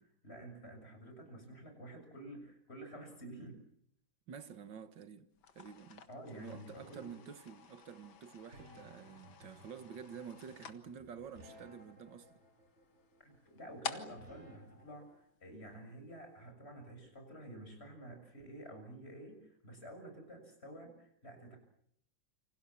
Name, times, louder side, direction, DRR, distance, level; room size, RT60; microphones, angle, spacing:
voice 1, 0.0-3.6 6.1-7.2 13.2-21.6, right 1 dB, 30° left, 7.5 m, -50 dB
voice 2, 4.3-12.3, right 7 dB, 70° right, 2.3 m, -50 dB
sound 1, 5.4-15.7, left 7 dB, 90° left, 2.4 m, -51 dB
sound 2, 7.1-15.1, equal, 35° right, 7.1 m, -59 dB
29.0 x 26.0 x 7.3 m
omnidirectional pair, 2.1 m